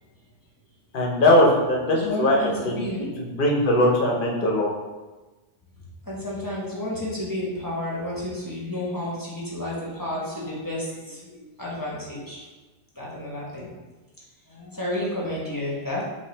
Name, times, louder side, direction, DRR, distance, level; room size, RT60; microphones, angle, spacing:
voice 1, 0.9-4.7, left 1 dB, 45° left, -2 dB, 0.8 m, -21 dB
voice 2, 1.9-3.0 6.0-12.5 12.9-13.7 14.5-16.0, left 1 dB, 15° left, -6 dB, 0.9 m, -31 dB
5.8 x 2.7 x 3.3 m, 1.2 s
omnidirectional pair, 1.4 m